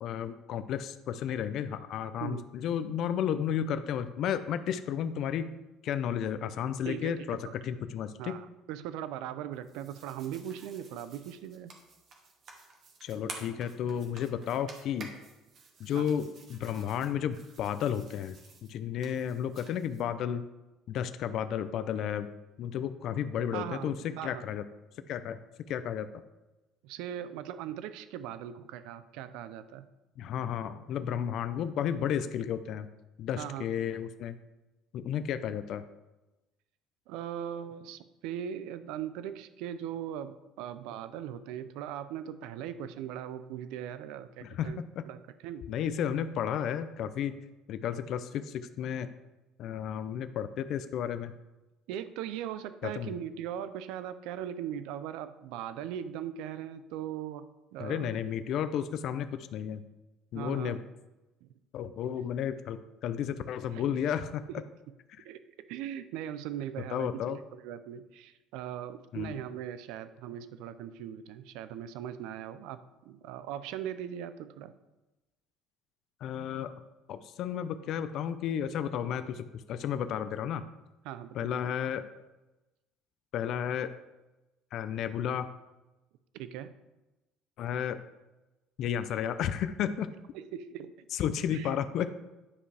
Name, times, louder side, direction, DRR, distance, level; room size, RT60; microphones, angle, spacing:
voice 1, 0.0-5.5 5.8-7.4 7.6-8.4 13.0-15.1 15.8-18.4 18.7-20.4 20.9-22.3 22.6-24.6 25.1-25.4 25.7-26.1 30.2-32.9 33.2-34.3 34.9-35.8 44.4-45.0 45.7-47.4 47.7-49.1 49.6-51.3 52.8-53.1 57.8-59.8 60.3-60.8 61.7-64.4 66.9-67.4 69.1-69.4 76.2-76.8 77.1-80.6 81.3-82.0 83.3-83.9 84.7-85.5 87.6-88.0 88.8-90.1 91.1-92.1, left 9 dB, 55° left, 11 dB, 0.4 m, -32 dB
voice 2, 6.8-7.5 8.2-11.7 15.9-16.1 23.5-24.4 26.8-29.8 33.4-33.7 37.1-44.8 45.1-45.7 51.9-57.5 57.7-58.2 60.3-60.8 61.4-61.5 63.7-64.0 65.2-65.4 65.7-74.7 81.0-81.7 86.3-86.7 90.3-90.9 91.5-91.8, right 10 dB, 80° right, 12 dB, 0.5 m, -39 dB
sound 1, 9.5-20.0, right 4 dB, 45° right, 1.3 m, -51 dB
9.7 x 5.2 x 3.3 m, 1.0 s
cardioid pair, 135°, 0 cm